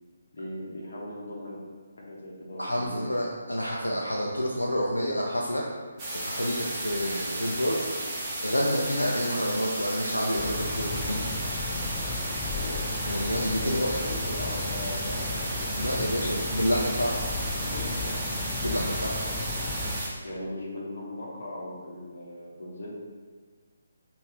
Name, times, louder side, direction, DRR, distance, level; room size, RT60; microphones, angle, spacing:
voice 1, 0.3-1.6 2.0-3.1 12.5-12.8 13.6-16.5 17.5-18.3 19.1-19.8 20.2-22.9, left 1 dB, 50° left, -4 dB, 1.1 m, -39 dB
voice 2, 2.6-5.6 6.1-7.8 8.4-11.4 13.1-13.9 15.8-17.2 18.6-19.2, equal, 80° left, -2 dB, 0.5 m, -28 dB
sound 1, 6.0-20.1, right 1 dB, 20° right, 1.0 m, -34 dB
sound 2, 10.4-20.0, left 2 dB, 10° left, 0.5 m, -34 dB
4.9 x 2.6 x 3.2 m, 1.5 s
figure-of-eight pair, 145°, 0 cm